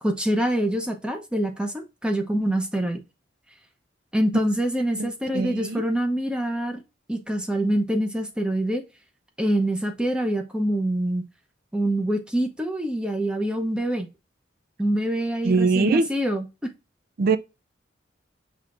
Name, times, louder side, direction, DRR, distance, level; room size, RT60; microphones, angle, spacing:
voice 1, 0.0-3.0 4.1-6.8 7.1-8.8 9.4-11.3 11.7-14.1 14.8-16.4, right 1 dB, 5° right, 0.7 m, -25 dB
voice 2, 5.0-5.8 15.4-16.1 17.2-17.4, right 4 dB, 50° right, 0.4 m, -22 dB
5.6 x 3.3 x 2.4 m
head